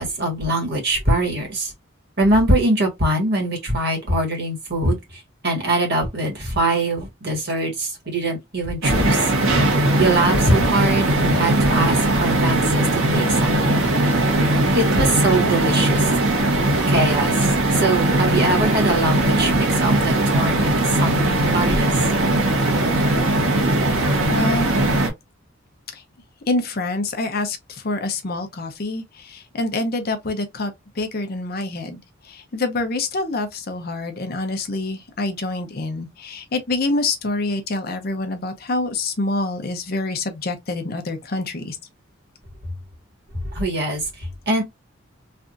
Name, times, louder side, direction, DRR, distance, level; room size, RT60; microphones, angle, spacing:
voice 1, 0.0-1.7 2.2-9.2 10.0-12.9 13.1-13.9 14.7-16.1 16.6-17.3 17.8-21.9 43.4-44.6, right 1 dB, 55° right, 1.5 m, -22 dB
sound 1, 8.8-25.1, right 2 dB, 90° right, 1.2 m, -19 dB
voice 2, 24.3-24.7 25.9-26.0 26.5-41.8, left 2 dB, 50° left, 0.7 m, -26 dB
3.4 x 2.5 x 2.5 m
head